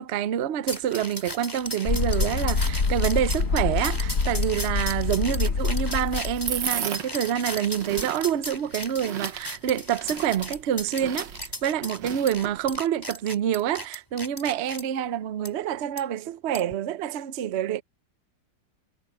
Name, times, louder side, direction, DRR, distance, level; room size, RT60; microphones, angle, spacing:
voice 1, 0.0-11.3 11.6-17.8, right 10 dB, 60° right, 0.7 m, -27 dB
sound 1, 0.7-14.8 15.4-15.5 16.0-16.1 16.5-16.7, equal, 10° left, 4.4 m, -36 dB
sound 2, 1.9-6.7, left 4 dB, 45° left, 1.8 m, -26 dB
sound 3, 5.3-12.8, right 8 dB, 75° right, 2.0 m, -37 dB
omnidirectional pair, 2.0 m